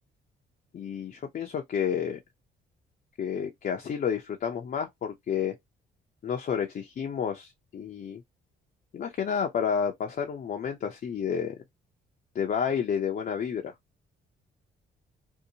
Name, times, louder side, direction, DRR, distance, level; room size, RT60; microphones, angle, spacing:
voice 1, 0.7-2.2 3.2-5.6 6.2-8.2 8.9-11.6 12.3-13.7, left 7 dB, 45° left, 0.5 m, -30 dB
2.7 x 2.0 x 2.8 m
cardioid pair, 90°, 20 cm